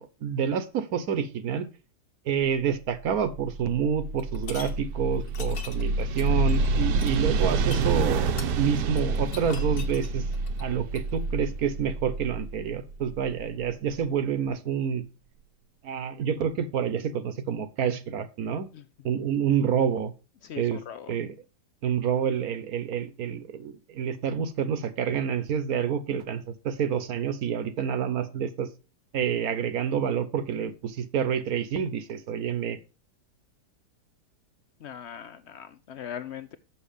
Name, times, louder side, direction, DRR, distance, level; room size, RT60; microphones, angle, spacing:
voice 1, 0.0-1.7 2.3-8.3 8.6-10.2 10.6-15.0 15.8-18.7 19.0-20.1 20.6-20.8 21.1-21.3 21.8-28.7 29.1-32.8, right 7 dB, 60° right, 12 dB, 1.2 m, -28 dB
sound 1, 3.1-13.9, right 3 dB, 80° right, 1.4 m, -28 dB
sound 2, 4.2-4.7 5.2-11.1, left 6 dB, 65° left, 1.6 m, -42 dB
voice 2, 18.7-19.1 20.4-21.2 34.8-36.6, left 9 dB, 85° left, 12 dB, 0.5 m, -40 dB
7.2 x 6.3 x 5.0 m, 0.32 s
omnidirectional pair, 1.8 m